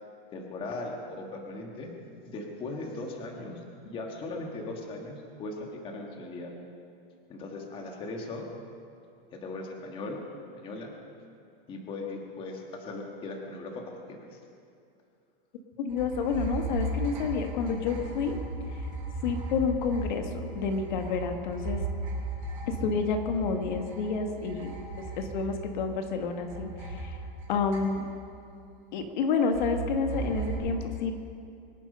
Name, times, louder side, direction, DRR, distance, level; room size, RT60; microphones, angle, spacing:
voice 1, 0.3-1.9 2.2-6.5 7.3-8.5 9.3-10.2 10.5-10.9 11.7-14.4, left 2 dB, 20° left, 1 dB, 1.5 m, -38 dB
voice 2, 15.8-18.3 19.2-21.8 22.7-24.7 25.2-27.2 27.5-28.0 28.9-31.1, left 5 dB, 55° left, 5 dB, 1.5 m, -29 dB
sound 1, 15.9-26.2 26.5-28.3 29.5-30.6, right 2 dB, 25° right, 5.4 m, -36 dB
24.0 x 11.0 x 5.5 m, 2.5 s
supercardioid pair, 170°, 29 cm